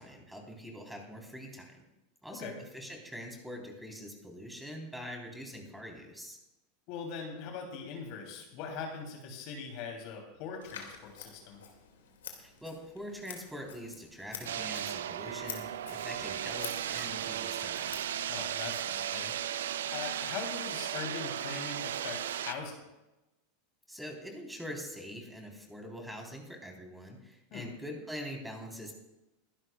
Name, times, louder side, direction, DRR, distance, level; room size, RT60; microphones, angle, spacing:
voice 1, 0.0-1.8 2.2-6.4 12.4-18.0 23.9-28.9, equal, 5° right, 1 dB, 3.7 m, -44 dB
voice 2, 6.9-11.6 18.3-19.4 19.9-22.9 27.5-27.7, left 5 dB, 55° left, 2 dB, 3.1 m, -41 dB
Scissors, 10.6-18.6, left 8 dB, 75° left, 2.3 m, -49 dB
sound 1, 14.4-22.5, right 10 dB, 75° right, 0.5 m, -36 dB
22.5 x 11.0 x 2.4 m, 0.97 s
hypercardioid pair, 90°, 0 cm